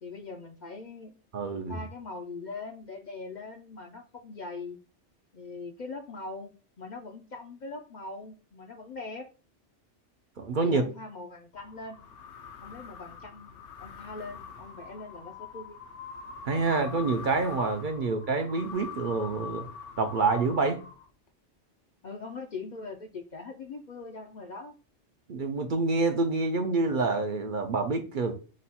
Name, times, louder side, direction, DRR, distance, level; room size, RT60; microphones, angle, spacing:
voice 1, 0.0-1.2 1.7-4.8 5.3-9.3 10.6-12.0 12.6-13.5 13.8-15.8 22.0-24.7, left 3 dB, 55° left, 4 dB, 0.5 m, -41 dB
voice 2, 1.3-1.8 10.4-10.8 16.5-19.6 20.0-20.8 25.3-28.3, right 3 dB, 55° right, 6 dB, 0.6 m, -27 dB
sound 1, 11.5-21.3, left 6 dB, 80° left, 1.0 m, -44 dB
5.1 x 2.3 x 4.1 m, 0.35 s
omnidirectional pair, 1.2 m